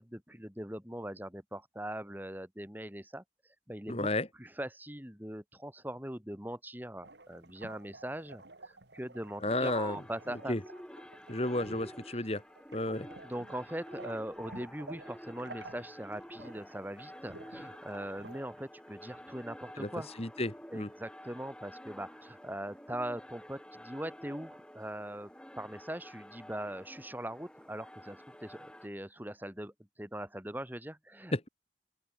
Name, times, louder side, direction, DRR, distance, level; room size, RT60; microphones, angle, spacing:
voice 1, 0.0-3.2 3.7-4.1 4.4-10.6 12.9-13.0 13.2-20.1 20.7-25.3 25.6-29.7 30.0-31.5, right 1 dB, 10° right, 3.1 m, -41 dB
voice 2, 3.9-4.3 9.4-10.0 10.5-10.6 11.3-12.4 12.7-13.1 19.8-19.9 20.2-20.9 31.3-31.5, left 1 dB, 35° left, 2.4 m, -32 dB
Bathtub (underwater), 7.0-18.4, right 2 dB, 75° right, 5.6 m, -51 dB
sound 1, 9.5-28.9, equal, 5° left, 3.6 m, -50 dB
open air
head